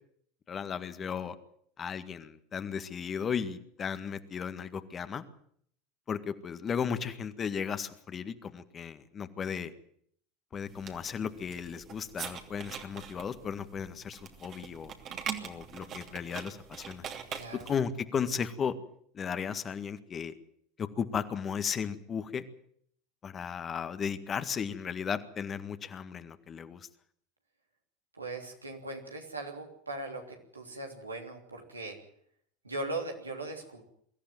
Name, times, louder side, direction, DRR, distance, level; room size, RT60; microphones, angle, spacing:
voice 1, 0.5-1.3 1.8-5.2 6.1-9.7 10.5-14.9 15.4-17.0 17.5-18.7 19.1-20.3 20.8-22.4 23.2-26.9, left 7 dB, 30° left, 10 dB, 1.8 m, -35 dB
sound 1, 10.7-17.9, right 8 dB, 45° right, 2.9 m, -43 dB
voice 2, 17.3-17.7 28.1-32.0 32.6-33.8, right 2 dB, 90° right, 2 dB, 3.2 m, -39 dB
23.0 x 14.0 x 9.2 m, 0.67 s
figure-of-eight pair, 75°, 0 cm